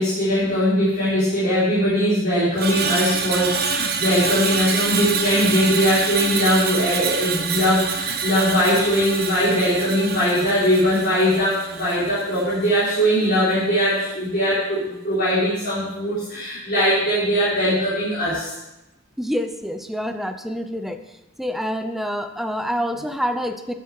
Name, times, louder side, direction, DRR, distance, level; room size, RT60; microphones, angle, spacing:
voice 1, 0.0-18.5, equal, 45° left, -11 dB, 4.3 m, -20 dB
Screech, 2.6-12.9 13.2-13.5, right 5 dB, 50° right, 1.2 m, -26 dB
voice 2, 19.2-21.0 21.4-23.7, equal, ahead, 8 dB, 0.6 m, -27 dB
13.0 x 7.4 x 4.7 m, 0.95 s
head